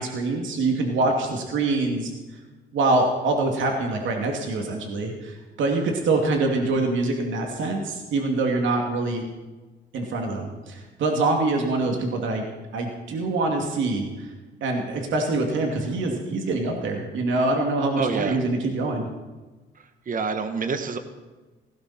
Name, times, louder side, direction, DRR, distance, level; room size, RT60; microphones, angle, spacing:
voice 1, 0.0-2.1 2.7-9.3 9.9-12.4 12.7-14.3 14.6-19.1, right 2 dB, 75° right, 1 dB, 2.8 m, -25 dB
voice 2, 17.9-18.4 20.1-21.0, right 5 dB, 45° right, 8 dB, 1.5 m, -27 dB
18.5 x 17.5 x 4.4 m, 1.2 s
cardioid pair, 90°, 20 cm